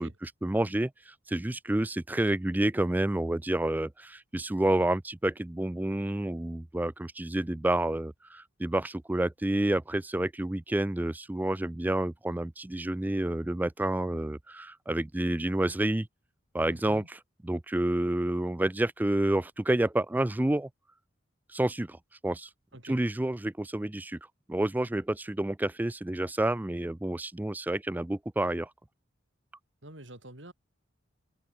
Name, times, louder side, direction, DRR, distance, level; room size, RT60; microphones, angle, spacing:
voice 1, 0.0-16.1 16.5-17.2 17.4-20.7 21.5-22.0 22.2-22.5 22.8-24.2 24.5-28.7, right 1 dB, 10° right, 0.3 m, -29 dB
voice 2, 16.7-17.1 22.7-23.0 29.8-30.5, right 1 dB, 65° right, 6.3 m, -47 dB
head